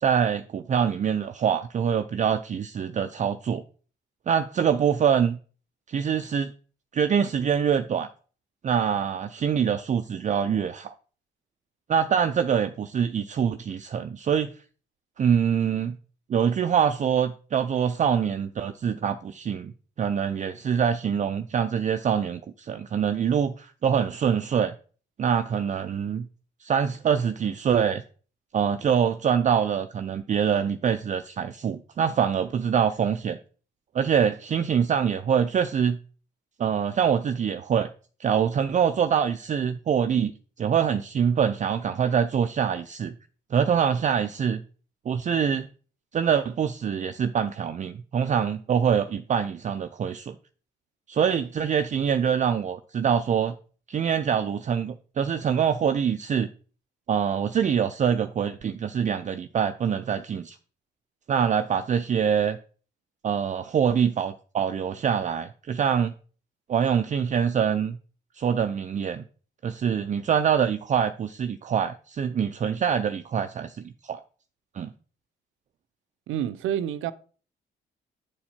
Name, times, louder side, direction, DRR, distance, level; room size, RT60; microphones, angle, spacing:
voice 1, 0.0-3.6 4.3-5.4 5.9-6.5 6.9-8.1 8.6-10.9 11.9-14.5 15.2-15.9 16.3-19.7 20.0-24.7 25.2-26.2 26.6-28.0 28.5-33.4 33.9-36.0 36.6-37.9 38.2-40.3 40.6-43.1 43.5-44.6 45.1-45.7 46.1-50.4 51.1-53.5 53.9-56.5 57.1-60.6 61.3-62.6 63.2-66.1 66.7-68.0 68.4-69.2 69.6-74.2 74.7-74.9, right 7 dB, 40° right, 0.5 m, -24 dB
voice 2, 76.3-77.1, right 10 dB, 85° right, 0.6 m, -28 dB
9.5 x 4.4 x 4.3 m
cardioid pair, 90°, 20 cm